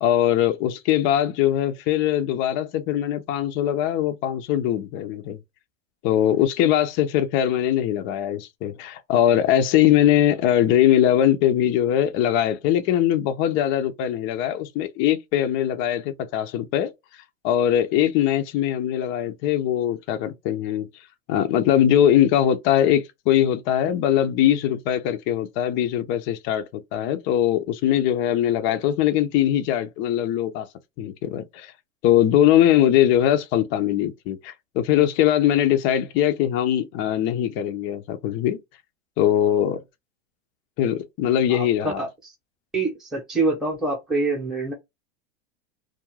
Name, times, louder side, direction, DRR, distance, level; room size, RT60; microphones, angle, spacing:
voice 1, 0.0-5.4 6.0-16.9 17.4-20.9 21.3-26.6 26.9-30.7 31.0-31.7 32.0-38.6 39.2-39.8 40.8-42.0, left 11 dB, 35° left, 0.4 m, -21 dB
voice 2, 41.5-42.3 42.7-44.7, right 3 dB, ahead, 0.7 m, -26 dB
2.4 x 2.2 x 3.1 m
hypercardioid pair, 125°, 38 cm